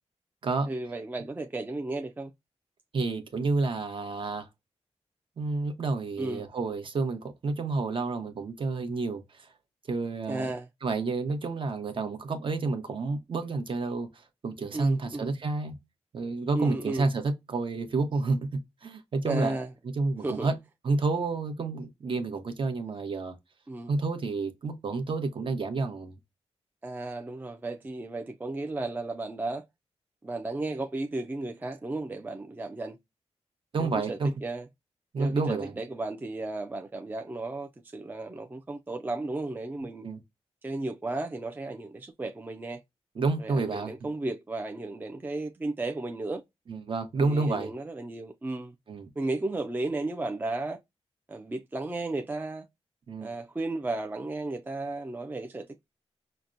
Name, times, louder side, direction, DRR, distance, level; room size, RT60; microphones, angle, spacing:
voice 1, 0.7-2.3 6.2-6.5 10.3-10.7 14.7-15.3 16.5-17.1 19.3-19.7 20.2-20.5 23.7-23.9 26.8-29.6 30.2-33.0 33.8-34.6 35.2-40.1 40.6-42.8 43.4-46.4 47.2-48.7 49.2-50.8 51.3-52.6 53.2-55.8, right 2 dB, 15° right, 0.3 m, -34 dB
voice 2, 2.9-4.5 5.4-9.5 9.9-10.5 10.8-14.1 14.4-15.8 16.1-19.6 19.9-20.6 20.8-23.4 23.9-26.2 33.7-34.3 35.1-35.8 40.0-40.2 43.1-44.1 46.7-47.7 48.9-49.1 53.1-53.3, right 3 dB, 50° right, 0.9 m, -30 dB
5.7 x 2.1 x 2.5 m
wide cardioid pair, 150°, 11 cm